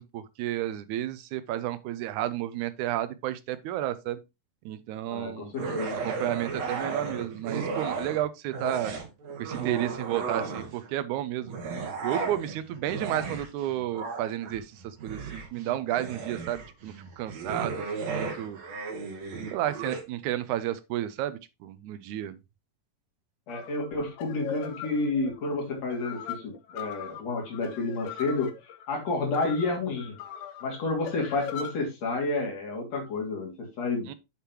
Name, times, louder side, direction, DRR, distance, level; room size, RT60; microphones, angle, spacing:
voice 1, 0.0-4.2 4.6-5.5 5.9-8.9 9.4-11.5 12.0-18.6 19.5-22.4 34.1-34.2, right 12 dB, 80° right, 1.8 m, -32 dB
voice 2, 5.1-6.0 23.5-30.1 30.6-34.1, left 3 dB, 55° left, 3.5 m, -30 dB
sound 1, 5.6-8.2 8.5-10.9 11.4-20.0, right 4 dB, 60° right, 2.6 m, -35 dB
sound 2, 23.5-31.7, left 8 dB, 85° left, 2.7 m, -40 dB
7.5 x 6.8 x 3.0 m
omnidirectional pair, 3.8 m